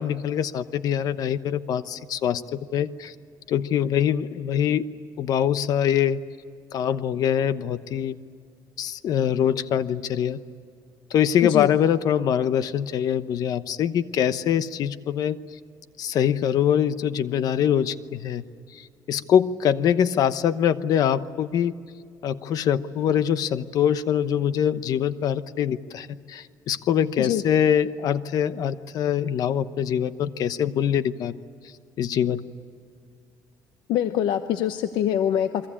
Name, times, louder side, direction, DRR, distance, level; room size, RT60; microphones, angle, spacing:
voice 1, 0.0-3.1 3.5-4.9 5.2-6.2 6.7-8.2 8.8-10.4 11.1-15.4 16.0-18.4 18.7-21.7 22.2-31.4 32.0-32.4, left 9 dB, 60° left, 13 dB, 1.0 m, -24 dB
voice 2, 33.9-35.7, left 10 dB, 90° left, 9 dB, 0.9 m, -24 dB
29.0 x 22.5 x 8.7 m, 2.3 s
cardioid pair, 150°, 7 cm